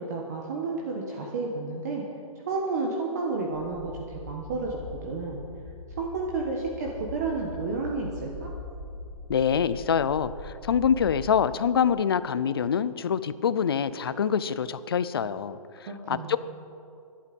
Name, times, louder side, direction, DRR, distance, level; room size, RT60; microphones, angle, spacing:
voice 1, 0.0-2.0 2.4-5.4 6.0-8.5 15.9-16.4, right 3 dB, 30° right, -1 dB, 1.4 m, -31 dB
sound 1, 3.5-11.3, left 2 dB, 10° left, 1.6 m, -42 dB
voice 2, 9.3-16.4, left 7 dB, 40° left, 15 dB, 0.6 m, -25 dB
21.0 x 11.5 x 5.3 m, 2.5 s
hypercardioid pair, 180°, 18 cm